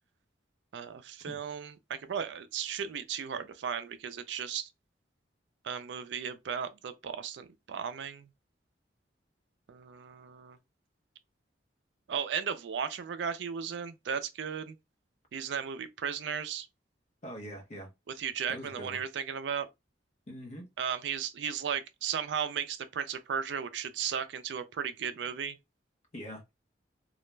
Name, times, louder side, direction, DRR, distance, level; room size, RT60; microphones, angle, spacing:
voice 1, 0.7-4.7 5.6-8.3 9.7-10.6 12.1-14.8 15.3-16.7 18.2-19.7 20.8-25.6, right 7 dB, 75° right, 0.4 m, -35 dB
voice 2, 17.2-17.9 18.5-19.0 20.3-20.7 26.1-26.5, equal, 40° left, 0.8 m, -43 dB
2.3 x 2.1 x 3.0 m
head